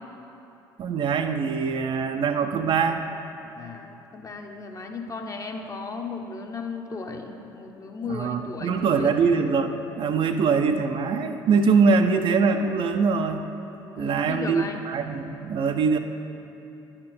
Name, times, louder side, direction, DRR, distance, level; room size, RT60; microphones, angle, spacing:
voice 1, 0.8-3.0 8.1-13.4 14.0-16.0, right 5 dB, 45° right, 7 dB, 0.5 m, -23 dB
voice 2, 3.4-9.2 13.9-14.8, left 4 dB, 30° left, 3 dB, 0.8 m, -35 dB
10.5 x 4.4 x 4.2 m, 2.9 s
hypercardioid pair, 60°, 12 cm